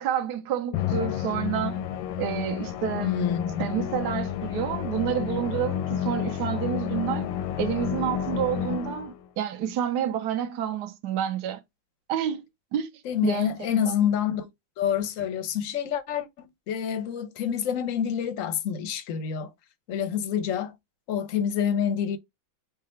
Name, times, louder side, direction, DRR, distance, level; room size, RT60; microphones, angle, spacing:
voice 1, 0.0-1.8 2.2-3.3 3.6-7.3 7.6-11.6 12.1-12.4 12.7-12.9 13.2-14.0, right 9 dB, 65° right, 1.3 m, -29 dB
Musical instrument, 0.7-9.3, left 10 dB, 90° left, 1.4 m, -30 dB
voice 2, 3.0-3.7 13.0-14.5 14.8-19.5 19.9-20.7 21.1-22.2, left 9 dB, 60° left, 0.8 m, -27 dB
4.8 x 2.4 x 4.2 m
omnidirectional pair, 2.1 m